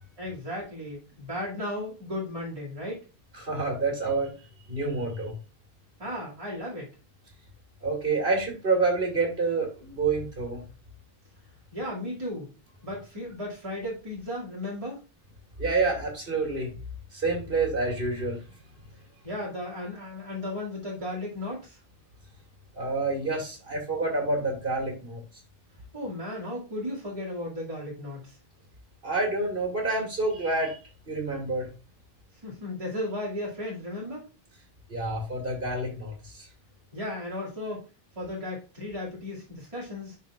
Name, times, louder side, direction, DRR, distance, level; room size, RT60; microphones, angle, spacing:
voice 1, 0.2-3.0 6.0-6.9 11.7-12.5 12.8-15.0 19.2-21.8 25.9-28.4 32.4-34.3 36.9-37.8 38.2-40.2, left 1 dB, 35° right, -5 dB, 2.3 m, -35 dB
voice 2, 3.4-4.3 4.7-5.3 7.8-10.6 15.6-16.8 17.1-18.4 22.8-25.2 29.0-30.8 31.1-31.7 34.9-36.5, right 3 dB, 65° right, 1 dB, 2.4 m, -28 dB
11.0 x 4.2 x 2.4 m, 0.32 s
omnidirectional pair, 1.0 m